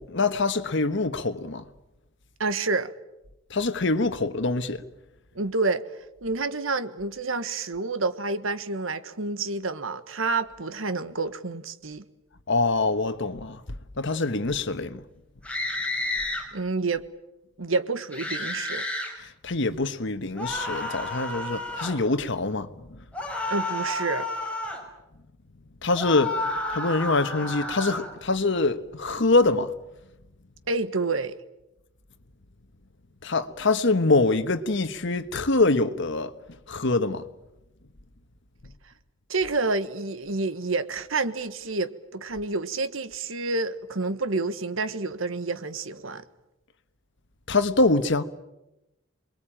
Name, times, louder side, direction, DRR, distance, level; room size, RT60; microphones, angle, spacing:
voice 1, 0.0-1.6 3.5-4.8 12.5-13.6 14.0-15.0 19.2-23.0 25.8-26.4 26.7-29.7 33.2-36.3 36.7-37.2 47.5-48.2, left 3 dB, 65° left, 1.4 m, -24 dB
voice 2, 2.4-2.9 5.3-5.8 6.2-12.0 16.5-17.0 17.6-18.9 23.5-24.3 30.7-31.4 39.3-46.2, right 3 dB, 85° right, 1.5 m, -28 dB
sound 1, 15.4-16.4 18.1-19.1 20.4-22.0 23.1-24.8 26.0-28.1, left 2 dB, 5° left, 5.7 m, -31 dB
27.0 x 22.0 x 8.9 m
head